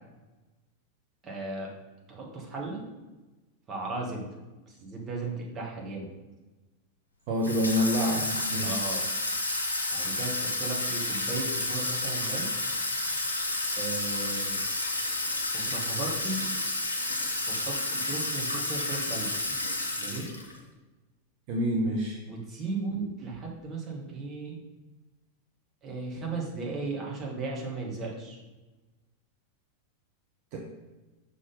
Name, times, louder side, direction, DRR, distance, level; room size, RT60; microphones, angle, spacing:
voice 1, 1.2-1.7 2.1-2.8 3.7-4.3 4.7-6.1 8.6-9.0 9.9-12.5 13.8-14.6 15.5-16.4 17.5-19.6 20.0-20.3 22.3-24.6 25.8-28.4, right 3 dB, 25° right, -2 dB, 1.7 m, -36 dB
voice 2, 7.3-8.8 21.5-22.2 30.5-30.6, equal, 45° right, -1 dB, 1.0 m, -27 dB
Water tap faucet / Sink (filling or washing), 7.4-20.6, left 2 dB, 80° left, 1.0 m, -31 dB
6.1 x 3.8 x 5.4 m, 1.1 s
figure-of-eight pair, 90°, 0 cm